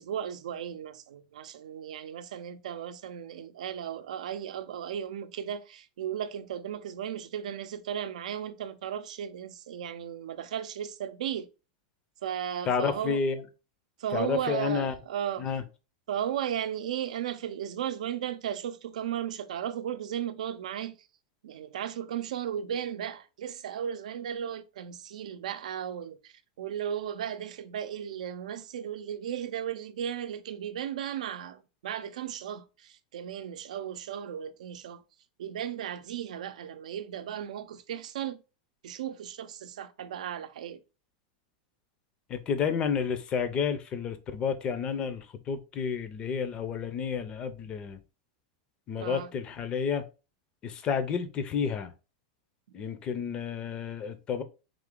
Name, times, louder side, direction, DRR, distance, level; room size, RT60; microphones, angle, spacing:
voice 1, 0.0-11.5 12.2-13.2 14.0-15.5 16.1-21.0 21.4-35.0 35.4-38.4 38.8-40.8 49.0-49.3, right 9 dB, 85° right, 0.5 m, -35 dB
voice 2, 12.7-13.4 14.1-14.9 15.4-15.6 42.3-48.0 48.9-50.0 50.6-51.9 52.7-54.4, left 6 dB, 25° left, 0.5 m, -30 dB
3.7 x 2.8 x 3.7 m
supercardioid pair, 150°, 4 cm